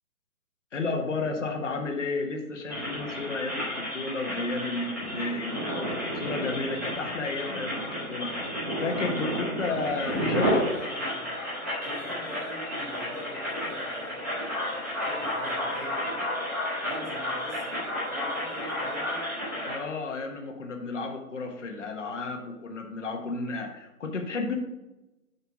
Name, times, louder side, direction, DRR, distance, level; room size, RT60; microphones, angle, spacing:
voice 1, 0.7-5.7 6.1-8.3 8.8-10.6 19.6-24.5, left 3 dB, 55° left, 2 dB, 1.4 m, -32 dB
sound 1, 2.7-19.8, equal, 10° right, 1.0 m, -31 dB
voice 2, 10.0-11.3 11.7-19.3, equal, 20° left, -7 dB, 2.8 m, -44 dB
7.1 x 5.7 x 4.8 m, 1.0 s
hypercardioid pair, 180°, 43 cm